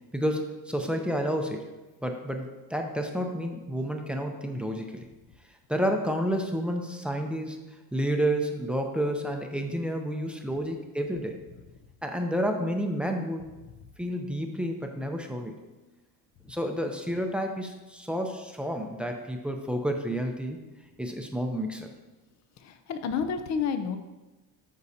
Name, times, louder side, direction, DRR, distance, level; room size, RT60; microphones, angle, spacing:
voice 1, 0.1-1.6 2.0-5.1 5.7-7.6 7.9-11.4 12.0-13.5 14.0-15.5 16.5-20.6 21.0-21.9, equal, 5° right, 3 dB, 0.6 m, -30 dB
voice 2, 22.6-24.0, left 6 dB, 45° left, 8 dB, 0.6 m, -30 dB
13.0 x 5.5 x 2.7 m, 1.1 s
cardioid pair, 160°, 38 cm